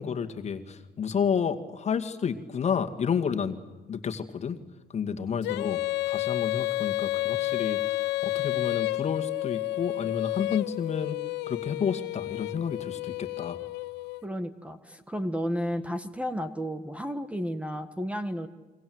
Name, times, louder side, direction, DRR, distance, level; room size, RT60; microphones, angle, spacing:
voice 1, 0.0-3.6 3.9-4.6 4.9-5.8 6.1-11.2 11.5-13.6, left 7 dB, 40° left, 7 dB, 2.3 m, -30 dB
Female singing, 5.4-14.2, left 18 dB, 90° left, 0.8 m, -30 dB
voice 2, 14.2-18.5, equal, 5° right, 11 dB, 1.5 m, -32 dB
29.0 x 24.0 x 8.0 m, 1.2 s
cardioid pair, 110°, 17 cm